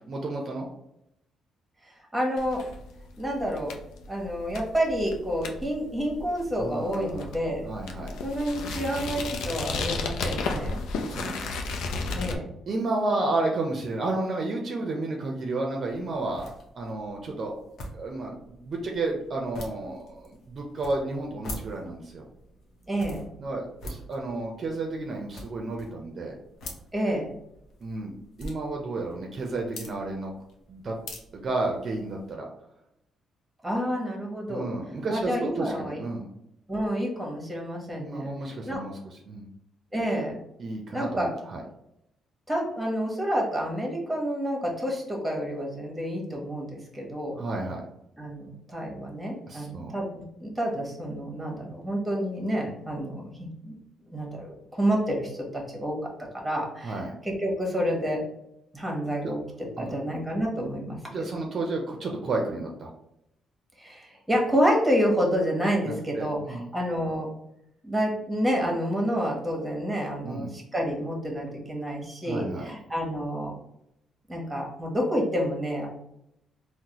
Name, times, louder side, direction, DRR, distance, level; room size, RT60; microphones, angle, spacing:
voice 1, 0.1-0.7 6.6-7.3 7.7-8.1 11.1-11.9 12.7-17.5 17.9-22.2 23.4-26.4 27.8-28.1 28.4-30.3 30.7-31.0 31.3-32.5 34.5-36.3 38.0-39.0 39.3-39.5 40.6-41.6 47.4-47.8 49.5-50.0 56.8-57.1 59.8-60.0 61.1-62.9 65.8-66.7 70.2-70.5 72.2-72.7, right 2 dB, 50° right, 1 dB, 0.5 m, -32 dB
voice 2, 2.1-2.6 3.2-3.7 4.1-7.7 8.2-10.8 12.1-12.5 22.9-23.2 26.9-27.3 33.6-34.7 35.1-36.0 36.7-38.3 38.6-38.8 39.9-40.3 40.9-41.3 42.5-47.4 48.2-53.8 54.1-58.2 58.7-59.4 59.8-61.2 63.8-67.3 67.8-73.5 74.3-75.9, equal, 10° right, -1 dB, 1.1 m, -29 dB
sound 1, 2.4-12.4, left 3 dB, 90° left, 0.4 m, -34 dB
sound 2, 15.8-32.3, left 1 dB, 70° left, 0.8 m, -45 dB
3.8 x 2.1 x 2.9 m, 0.81 s
cardioid pair, 90°, 0 cm